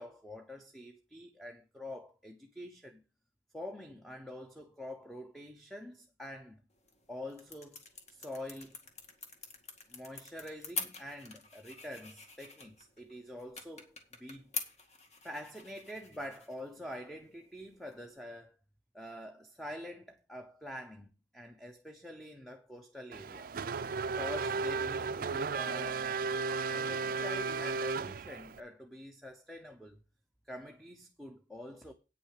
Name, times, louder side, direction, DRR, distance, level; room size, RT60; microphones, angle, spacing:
voice 1, 0.0-3.0 3.5-6.6 7.1-7.8 8.1-8.8 9.9-14.5 15.2-18.6 18.9-23.5 24.2-26.0 26.7-30.0 30.5-31.9, left 1 dB, ahead, 0.8 m, -46 dB
sound 1, 6.7-18.2, left 4 dB, 40° left, 2.0 m, -46 dB
Race car auto racing / Accelerating revving vroom, 23.1-28.6, right 4 dB, 50° right, 0.5 m, -34 dB
9.3 x 6.3 x 6.5 m
head